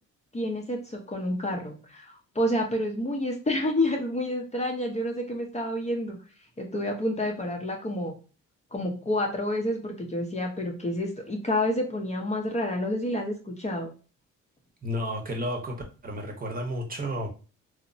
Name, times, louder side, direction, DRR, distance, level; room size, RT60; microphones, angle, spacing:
voice 1, 0.3-6.2 6.6-8.2 8.7-13.9, left 1 dB, 25° left, 1 dB, 0.5 m, -29 dB
voice 2, 14.8-15.8 16.0-17.3, equal, 30° right, 1 dB, 0.7 m, -31 dB
2.9 x 2.0 x 2.6 m, 0.35 s
cardioid pair, 90°, 30 cm